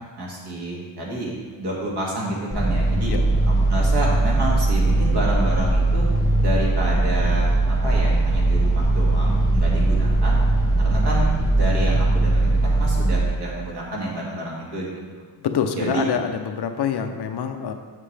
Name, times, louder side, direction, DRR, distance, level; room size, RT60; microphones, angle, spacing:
voice 1, 0.2-3.1 3.5-6.1 6.4-10.4 10.8-15.2 15.8-16.0, right 1 dB, 55° right, -4 dB, 2.2 m, -29 dB
sound 1, 2.5-13.2, right 2 dB, 5° left, 1.1 m, -19 dB
voice 2, 15.4-17.7, left 7 dB, 55° left, 6 dB, 0.6 m, -25 dB
7.6 x 7.5 x 3.3 m, 1.5 s
cardioid pair, 125°, 47 cm